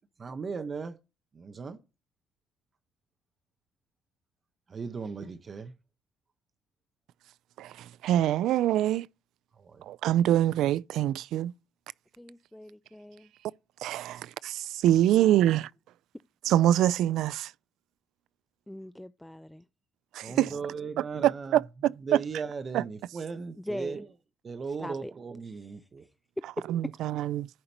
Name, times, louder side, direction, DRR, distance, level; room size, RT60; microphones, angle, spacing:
voice 1, 0.2-1.0 1.3-1.8 4.7-5.7 9.6-9.9 20.2-21.6 22.0-24.0 24.4-26.0, right 5 dB, 30° right, 1.0 m, -37 dB
voice 2, 7.6-9.1 9.8-11.5 13.8-15.7 16.4-17.5 20.1-20.5 21.0-22.2 22.7-22.8 26.7-27.5, right 12 dB, 70° right, 0.3 m, -25 dB
voice 3, 12.2-13.3 15.2-15.4 18.7-19.6 20.3-20.6 23.6-24.0 24.7-25.1 25.4-25.7, left 1 dB, 5° left, 0.4 m, -42 dB
15.0 x 5.1 x 2.9 m
cardioid pair, 145°, 0 cm